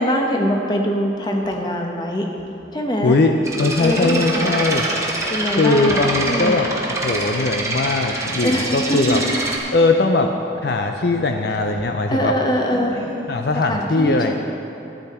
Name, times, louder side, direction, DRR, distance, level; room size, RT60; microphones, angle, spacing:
voice 1, 0.0-2.3 2.7-3.2 3.8-4.6 5.3-6.7 8.4-9.2 12.1-12.9 13.5-14.3, equal, 25° left, 1 dB, 1.0 m, -23 dB
sound 1, 0.8-2.8 3.7-8.0 8.4-8.7 9.1-9.7 10.1-10.2 10.5-13.4, right 1 dB, 35° right, 1.7 m, -44 dB
sound 2, 3.4-9.6, right 2 dB, 15° right, 1.1 m, -25 dB
voice 2, 3.6-4.9 5.6-6.7 7.0-9.2 9.7-10.3 10.6-12.3 13.3-14.3, left 3 dB, 60° left, 4 dB, 0.5 m, -19 dB
sound 3, 3.8-9.7, equal, 85° left, 2.8 m, -36 dB
13.0 x 9.2 x 4.3 m, 2.8 s
head